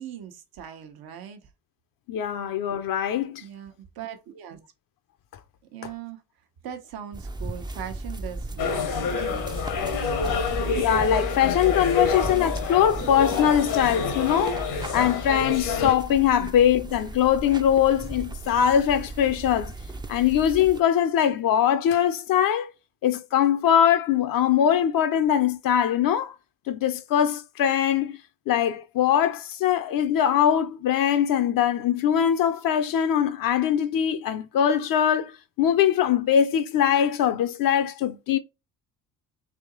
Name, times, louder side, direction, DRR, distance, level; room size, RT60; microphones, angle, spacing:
voice 1, 0.0-1.5 3.4-4.6 5.7-6.2 6.6-10.5 16.4-16.5, right 9 dB, 75° right, 1.0 m, -40 dB
voice 2, 2.1-3.4 10.7-14.6 14.9-19.7 20.1-22.7 23.0-26.4 26.7-28.2 28.5-35.3 35.6-38.4, left 9 dB, 65° left, 0.6 m, -22 dB
sound 1, 7.1-20.8, right 2 dB, 10° right, 0.4 m, -36 dB
sound 2, 8.6-16.0, left 5 dB, 80° left, 1.2 m, -28 dB
3.5 x 2.8 x 3.9 m
supercardioid pair, 75°, 37 cm